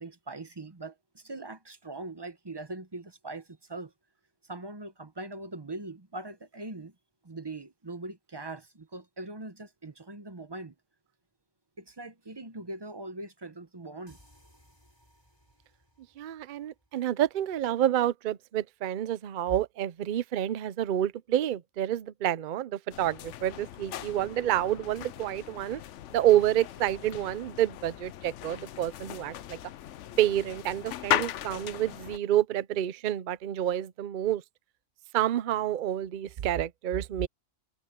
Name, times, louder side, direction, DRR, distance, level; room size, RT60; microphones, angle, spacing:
voice 1, 0.0-3.9 4.4-6.9 7.2-10.7 11.8-14.2, right 2 dB, 20° right, 0.8 m, -41 dB
sound 1, 14.1-17.6, equal, 20° left, 5.8 m, -62 dB
voice 2, 16.2-25.8 26.1-29.6 30.2-34.4 35.1-37.3, right 12 dB, 50° right, 0.6 m, -28 dB
sound 2, 22.9-32.2, left 12 dB, 70° left, 0.9 m, -37 dB
omnidirectional pair, 1.3 m